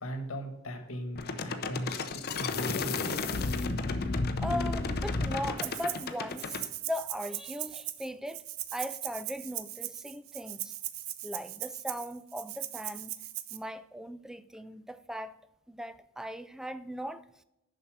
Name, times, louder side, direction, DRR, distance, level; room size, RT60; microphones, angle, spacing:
voice 1, 0.0-3.0, equal, 75° left, 1.4 m, -38 dB
sound 1, 1.1-6.6, left 3 dB, 50° left, 0.7 m, -32 dB
voice 2, 4.4-8.4 8.7-10.7 11.2-13.1 13.5-15.4 15.7-17.3, equal, ahead, 0.3 m, -38 dB
Rattle (instrument), 5.6-6.1 6.4-13.6, right 14 dB, 75° right, 0.6 m, -39 dB
6.9 x 5.8 x 6.3 m
head